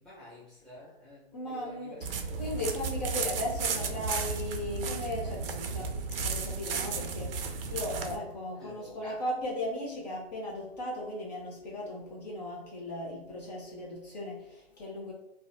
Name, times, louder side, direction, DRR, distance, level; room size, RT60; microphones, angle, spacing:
voice 1, 0.0-2.8 8.5-9.2, equal, ahead, -10 dB, 0.8 m, -50 dB
voice 2, 1.3-2.0 2.4-15.1, left 1 dB, 40° left, -3 dB, 0.7 m, -37 dB
sound 1, 2.0-8.2, right 5 dB, 60° right, 0.4 m, -34 dB
2.6 x 2.2 x 2.5 m, 0.90 s
hypercardioid pair, 145°, 32 cm